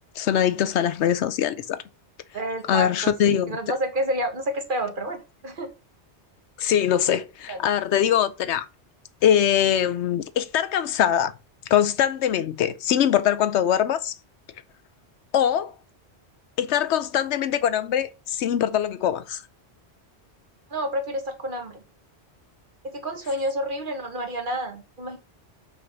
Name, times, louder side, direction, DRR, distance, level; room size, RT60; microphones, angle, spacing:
voice 1, 0.2-1.8 2.7-3.6 6.6-8.7 9.2-11.3 11.7-14.1 15.3-15.7 16.6-19.4, left 10 dB, 80° left, 0.9 m, -22 dB
voice 2, 2.3-5.7 7.5-7.6 20.7-21.8 22.8-25.2, right 1 dB, 50° right, 1.5 m, -29 dB
6.0 x 3.6 x 5.9 m
omnidirectional pair, 1.1 m